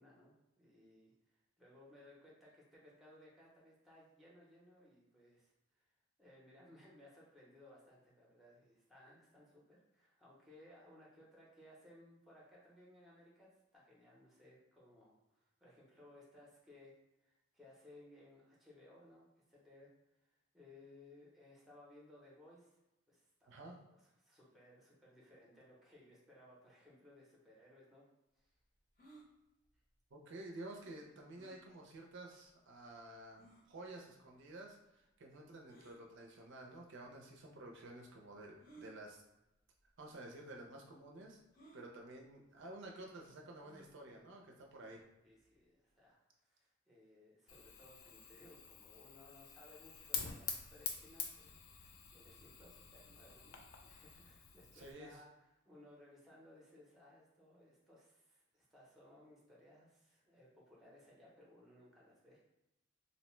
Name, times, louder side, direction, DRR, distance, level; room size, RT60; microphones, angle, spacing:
voice 1, 0.0-5.9 6.2-16.9 17.2-19.9 20.2-20.3 20.5-22.8 23.1-28.0 28.4-28.5 45.2-62.4, left 1 dB, ahead, -5 dB, 0.6 m, -62 dB
sound 1, 29.0-29.3 31.3-31.6 32.4-32.5 33.4-33.6 35.7-36.0 37.0-37.1 38.6-38.9 39.8-40.0 40.3-40.4 41.5-41.8 43.5-43.9, right 2 dB, 45° left, 0.8 m, -59 dB
voice 2, 30.1-39.2 40.0-41.4 41.7-45.0 54.7-55.2, right 2 dB, 60° right, 0 dB, 0.4 m, -52 dB
Fire, 47.5-54.9, left 6 dB, 80° left, 0.4 m, -47 dB
2.6 x 2.1 x 3.0 m, 0.93 s
head